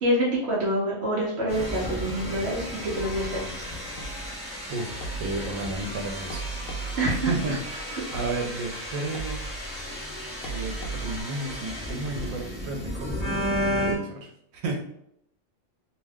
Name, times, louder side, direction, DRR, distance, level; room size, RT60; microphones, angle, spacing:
voice 1, 0.0-3.6 7.0-7.6 7.9-8.0, right 1 dB, 60° right, -6 dB, 0.9 m, -27 dB
sound 1, 1.5-13.9, equal, 5° right, 0.6 m, -34 dB
sound 2, 2.9-11.2, right 2 dB, 60° left, 0.6 m, -38 dB
voice 2, 4.7-6.4 6.7-9.5 10.4-10.7 11.0-14.8, right 3 dB, 90° right, 2 dB, 1.1 m, -33 dB
2.7 x 2.2 x 3.4 m, 0.73 s
omnidirectional pair, 1.4 m